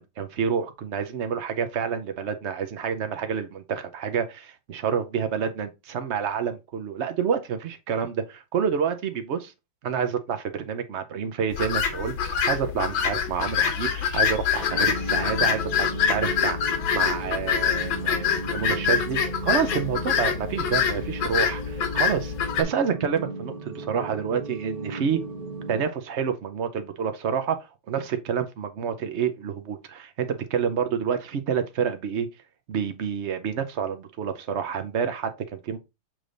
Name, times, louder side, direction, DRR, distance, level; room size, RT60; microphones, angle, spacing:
voice 1, 0.0-9.5 9.8-25.2 25.7-32.3 32.7-35.8, right 7 dB, 80° right, 0.6 m, -28 dB
sound 1, 11.5-22.6, left 7 dB, 80° left, 1.8 m, -25 dB
sound 2, 14.6-25.8, right 2 dB, 55° right, 1.7 m, -36 dB
7.6 x 3.3 x 3.9 m
omnidirectional pair, 2.1 m